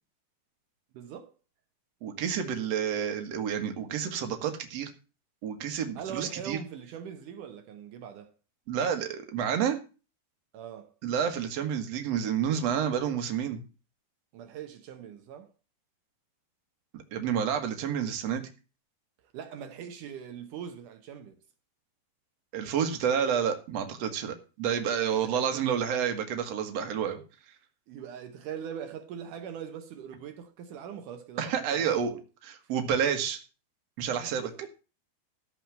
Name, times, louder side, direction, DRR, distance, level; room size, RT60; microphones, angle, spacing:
voice 1, 0.9-1.4 6.0-8.3 10.5-10.9 14.3-15.5 19.3-21.3 25.2-25.6 27.9-32.2 32.6-32.8 34.2-34.7, right 8 dB, 75° right, 1.9 m, -41 dB
voice 2, 2.0-4.9 5.4-6.6 8.7-9.8 11.0-13.6 16.9-18.5 22.5-27.2 31.4-32.1 32.4-33.4 34.0-34.5, right 8 dB, 55° right, 2.0 m, -29 dB
13.5 x 4.7 x 7.4 m
omnidirectional pair, 4.9 m